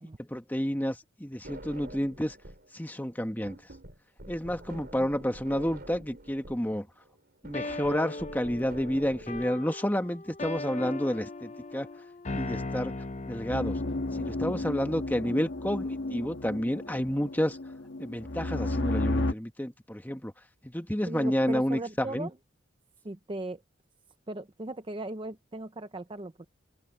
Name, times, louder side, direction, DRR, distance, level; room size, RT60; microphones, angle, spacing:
voice 1, 0.2-2.4 2.7-3.6 4.3-6.9 7.4-11.9 12.3-12.9 13.2-13.8 14.1-17.6 18.0-20.3 20.6-22.3, equal, 10° left, 1.3 m, -30 dB
sound 1, 1.4-2.7 3.0-9.4, right 1 dB, 50° right, 4.6 m, -47 dB
sound 2, 7.5-14.5, left 2 dB, 35° left, 0.6 m, -38 dB
sound 3, 13.5-19.3, left 2 dB, 60° left, 1.3 m, -32 dB
voice 2, 21.0-22.3 23.0-23.6 24.3-26.4, right 2 dB, 25° right, 0.6 m, -38 dB
open air
head